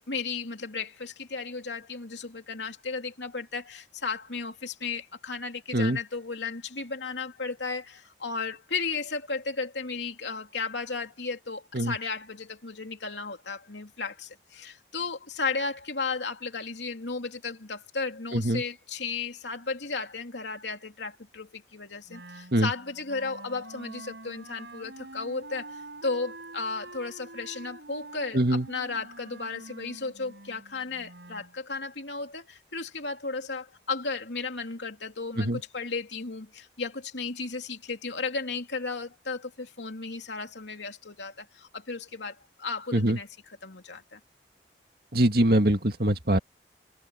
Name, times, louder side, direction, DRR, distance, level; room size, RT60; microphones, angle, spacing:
voice 1, 0.1-43.3 43.6-44.2, left 4 dB, 80° left, 3.0 m, -34 dB
voice 2, 18.3-18.6 22.5-22.7 28.3-28.7 35.4-35.6 42.9-43.2 45.1-46.4, right 1 dB, 55° right, 2.3 m, -23 dB
Wind instrument woodwind instrument, 22.1-31.5, right 2 dB, 80° right, 5.7 m, -46 dB
head